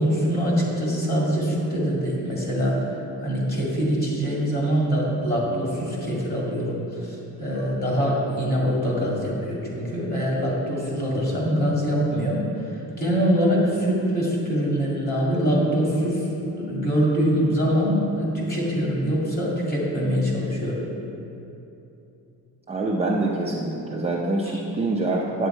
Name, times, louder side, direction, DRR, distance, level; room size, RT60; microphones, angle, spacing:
voice 1, 0.0-2.9 3.2-12.4 13.0-16.3 16.5-20.8 24.5-24.6, equal, 25° left, -4 dB, 2.2 m, -24 dB
voice 2, 22.7-25.5, right 2 dB, 20° right, -3 dB, 0.5 m, -25 dB
9.5 x 8.2 x 4.5 m, 2.9 s
cardioid pair, 165°, 35 cm